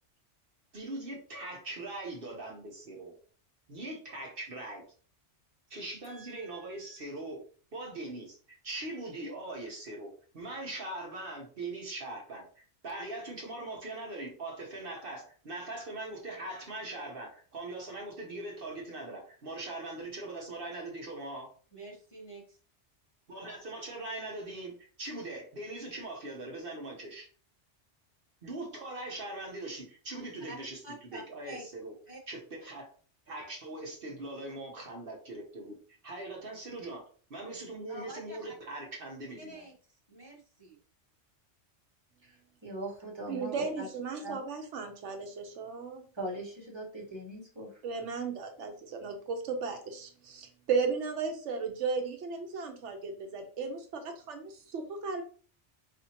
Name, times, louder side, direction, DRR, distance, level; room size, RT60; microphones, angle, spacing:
voice 1, 0.7-3.2 3.7-4.8 5.7-7.4 7.7-21.5 23.3-27.3 28.4-31.9 32.3-32.9 33.3-35.8 36.0-37.0 37.3-39.6, right 2 dB, 55° right, 0 dB, 1.0 m, -41 dB
voice 2, 6.0-7.0 21.7-22.6 30.5-30.6 30.8-31.7 32.1-32.2 37.9-38.4 39.4-39.7 40.1-40.8, right 1 dB, 25° left, -5 dB, 0.8 m, -48 dB
voice 3, 42.2-43.9 44.2-44.4 46.1-47.8, right 1 dB, 25° right, -4 dB, 1.4 m, -40 dB
voice 4, 43.3-46.0 47.8-55.2, right 5 dB, 80° right, 5 dB, 1.0 m, -35 dB
4.2 x 2.8 x 2.8 m, 0.42 s
omnidirectional pair, 1.2 m